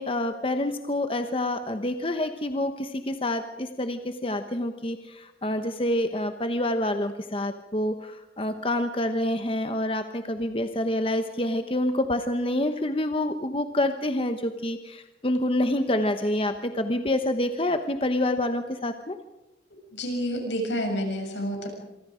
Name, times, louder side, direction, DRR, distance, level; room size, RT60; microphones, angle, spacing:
voice 1, 0.0-19.1, left 1 dB, 30° left, 8 dB, 1.0 m, -27 dB
voice 2, 19.9-21.7, equal, 85° left, 2 dB, 7.3 m, -29 dB
27.0 x 24.0 x 5.1 m, 1.0 s
head